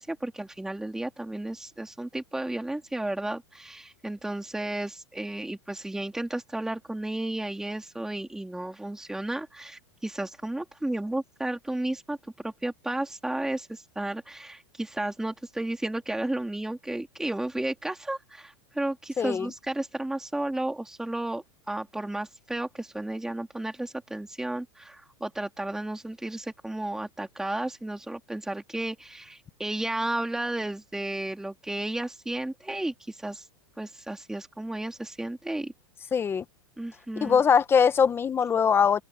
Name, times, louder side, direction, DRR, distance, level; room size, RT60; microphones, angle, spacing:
voice 1, 0.0-12.2 12.4-33.5 33.8-35.7 36.8-37.4, right 1 dB, 5° right, 2.7 m, -33 dB
voice 2, 19.2-19.5 36.1-36.4 37.2-39.0, left 7 dB, 15° left, 1.0 m, -22 dB
open air
supercardioid pair, 145°, 14 cm